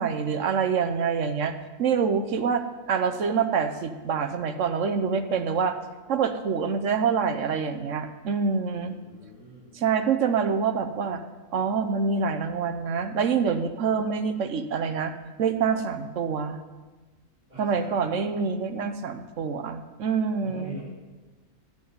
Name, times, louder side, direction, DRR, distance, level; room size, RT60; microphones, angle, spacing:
voice 1, 0.0-1.5 1.8-5.8 6.1-9.0 9.7-11.2 11.5-15.1 15.4-16.6 17.6-20.8, right 6 dB, 70° right, 9 dB, 1.2 m, -26 dB
voice 2, 8.8-9.8 17.5-18.3 20.4-20.8, right 2 dB, 35° right, -10 dB, 5.1 m, -45 dB
10.5 x 7.3 x 9.3 m, 1.3 s
omnidirectional pair, 1.4 m